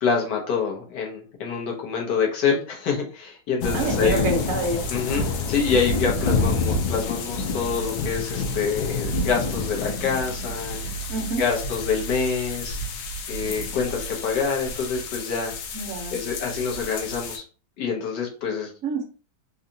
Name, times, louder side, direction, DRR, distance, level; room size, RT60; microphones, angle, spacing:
voice 1, 0.0-4.3 4.9-10.8 11.4-12.8 13.3-15.5 16.1-17.4 17.8-18.7, left 5 dB, 65° left, 0 dB, 1.5 m, -26 dB
sound 1, 3.6-17.4, left 3 dB, 85° left, 1.4 m, -28 dB
voice 2, 3.7-4.8 11.1-11.4 15.7-16.2 18.8-19.0, right 3 dB, 55° right, 1 dB, 1.0 m, -27 dB
3.9 x 2.3 x 2.7 m, 0.37 s
omnidirectional pair, 2.1 m